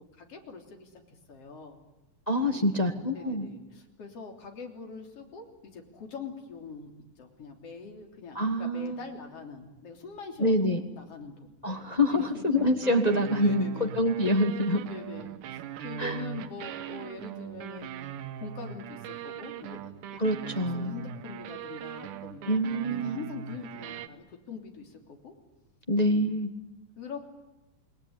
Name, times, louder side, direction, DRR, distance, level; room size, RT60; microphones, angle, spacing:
voice 1, 0.2-0.9 1.3-1.8 2.5-2.8 3.1-6.9 7.2-11.5 12.1-12.5 13.3-13.9 14.7-15.3 15.8-17.9 18.4-19.9 20.6-22.6 22.9-25.3 26.0-26.3 27.0-27.2, left 5 dB, 50° left, 3 dB, 4.3 m, -43 dB
voice 2, 2.3-3.5 8.3-9.0 10.4-10.8 11.6-14.8 16.0-16.2 20.2-20.9 22.5-23.2 25.9-26.5, equal, 25° left, 5 dB, 0.8 m, -26 dB
sound 1, 12.6-24.1, right 10 dB, 85° right, 2.7 m, -40 dB
28.5 x 20.5 x 9.7 m, 1.0 s
omnidirectional pair, 3.5 m